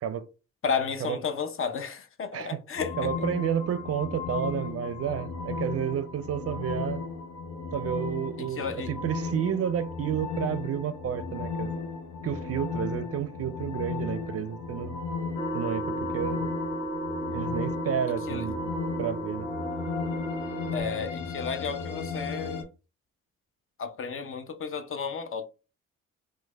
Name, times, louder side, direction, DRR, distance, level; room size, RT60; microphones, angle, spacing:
voice 1, 0.6-3.1 8.4-8.9 18.3-18.5 20.7-22.7 23.8-25.4, left 6 dB, 45° left, 0.6 m, -32 dB
sound 1, 2.8-22.6, left 4 dB, 80° left, 0.8 m, -35 dB
voice 2, 3.0-7.0 7.7-11.7 12.2-15.0 15.5-16.5 17.3-18.7 19.0-19.5, right 9 dB, 50° right, 0.5 m, -31 dB
sound 2, 15.3-20.8, right 1 dB, 20° left, 1.7 m, -34 dB
3.2 x 2.2 x 3.3 m
supercardioid pair, 65°, 31 cm